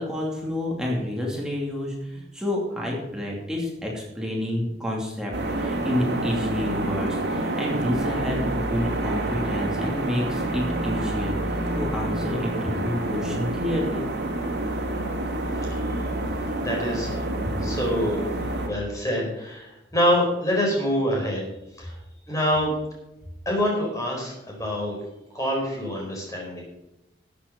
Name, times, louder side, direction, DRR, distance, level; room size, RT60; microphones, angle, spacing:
voice 1, 0.0-5.3 5.6-14.0, left 1 dB, 5° right, -3 dB, 2.6 m, -29 dB
sound 1, 5.3-18.7, right 1 dB, 70° right, 2.7 m, -28 dB
voice 2, 16.6-17.2 17.6-18.2 18.7-21.4 21.8-22.0 22.3-22.7 23.4-24.9 25.3-26.6, equal, 20° left, -2 dB, 4.7 m, -26 dB
13.5 x 8.3 x 5.2 m, 0.88 s
head